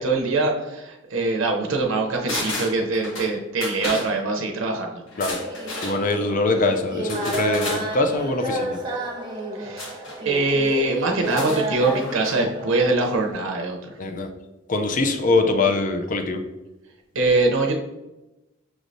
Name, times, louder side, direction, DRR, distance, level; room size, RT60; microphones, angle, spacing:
voice 1, 0.0-5.0 9.5-10.0 10.2-13.9 17.1-17.8, right 3 dB, 75° right, 2 dB, 0.6 m, -23 dB
sound 1, 2.3-3.3 3.6-4.1 5.1-6.0 7.1-7.8 9.8-10.2 11.2-12.4 12.7-12.8, left 2 dB, 70° left, 1.1 m, -32 dB
sound 2, 5.3-13.3, right 1 dB, 20° right, 0.9 m, -31 dB
voice 2, 5.8-8.8 14.0-14.3 14.7-16.4, left 3 dB, 40° left, 6 dB, 0.4 m, -23 dB
6.1 x 3.1 x 2.6 m, 0.99 s
head